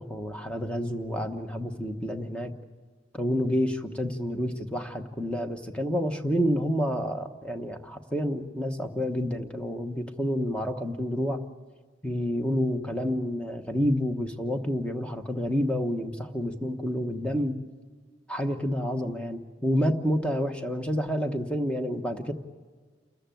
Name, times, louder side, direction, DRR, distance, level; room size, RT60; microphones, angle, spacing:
voice 1, 0.0-2.5 3.1-11.4 12.0-17.6 18.3-22.3, equal, 5° left, 5 dB, 1.1 m, -29 dB
29.0 x 14.0 x 9.2 m, 1.5 s
head